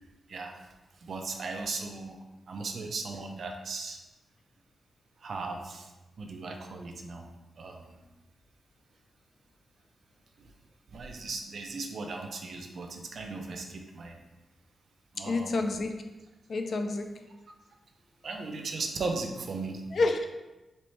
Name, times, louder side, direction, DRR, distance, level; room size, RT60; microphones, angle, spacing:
voice 1, 0.3-0.7 1.0-2.2 2.5-4.0 5.2-5.9 6.2-7.3 7.6-8.0 10.9-14.2 15.1-15.6 18.2-19.8, right 3 dB, 55° right, 3 dB, 0.5 m, -37 dB
voice 2, 15.3-16.0 16.5-17.1 19.9-20.3, left 3 dB, 50° left, 5 dB, 0.4 m, -28 dB
4.2 x 3.2 x 3.1 m, 1.1 s
wide cardioid pair, 150°, 0 cm